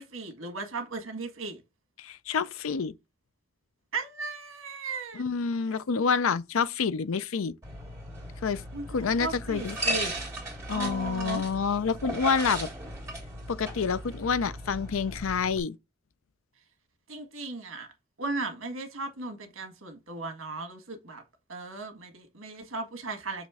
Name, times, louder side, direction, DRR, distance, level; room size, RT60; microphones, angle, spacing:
voice 1, 0.0-1.6 3.9-5.2 8.7-10.1 10.7-11.5 17.1-17.9 18.2-21.2 21.5-23.5, right 3 dB, 80° right, 1.6 m, -36 dB
voice 2, 2.0-2.9 5.1-7.5 8.4-8.6 8.9-9.8 10.7-12.7 13.5-15.7, left 5 dB, 90° left, 0.5 m, -28 dB
sound 1, 7.6-15.6, right 1 dB, 15° right, 2.6 m, -36 dB
6.5 x 3.1 x 4.8 m
head